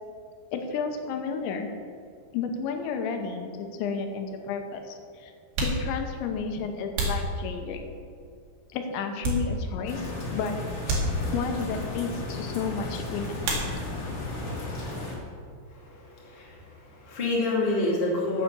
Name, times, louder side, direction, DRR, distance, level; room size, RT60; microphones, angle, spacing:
voice 1, 0.5-1.7 2.3-3.5 3.8-5.3 5.6-7.8 8.7-10.5 11.3-13.5, left 5 dB, 80° left, 5 dB, 3.2 m, -32 dB
sound 1, 5.5-8.0 8.6-9.9 10.2-10.4 10.8-11.7 13.4-14.2 14.5-15.2 15.4-17.6, right 1 dB, 65° right, 4.0 m, -32 dB
sound 2, 9.9-15.2, left 2 dB, 40° left, 3.2 m, -34 dB
voice 2, 15.7-16.6 16.9-18.4, left 2 dB, 20° left, -4 dB, 1.5 m, -28 dB
9.8 x 8.4 x 6.9 m, 2.3 s
omnidirectional pair, 5.3 m